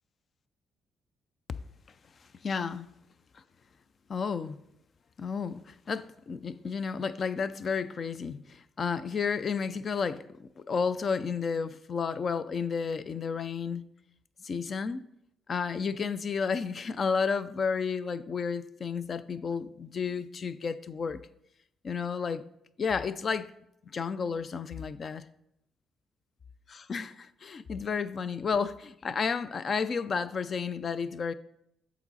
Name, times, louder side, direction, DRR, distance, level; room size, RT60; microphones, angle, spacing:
voice 1, 2.4-2.9 4.1-4.6 5.2-13.8 14.4-15.1 15.5-21.2 21.8-22.4 22.8-23.5 23.9-25.2 26.7-31.3, left 5 dB, 45° left, 0.4 m, -32 dB
7.1 x 4.1 x 4.0 m
cardioid pair, 90°, 0 cm